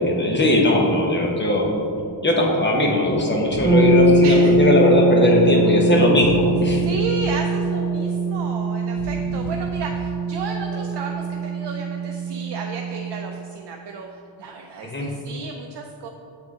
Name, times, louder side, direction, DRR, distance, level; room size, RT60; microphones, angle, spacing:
voice 1, 0.0-1.7 2.2-6.8 14.8-15.1, left 1 dB, 25° left, -1 dB, 0.9 m, -19 dB
Breathing, 1.3-1.6 2.0-2.1 2.9-3.1 3.4-4.4 5.0-5.6 6.1-7.1 7.7-8.3 8.8-9.8 10.4-11.1, left 2 dB, 90° left, 0.6 m, -37 dB
sound 1, 3.6-13.4, right 2 dB, 10° right, 1.0 m, -22 dB
voice 2, 6.7-16.1, right 4 dB, 65° right, 2 dB, 0.5 m, -33 dB
8.0 x 3.7 x 3.6 m, 2.6 s
wide cardioid pair, 115°, 46 cm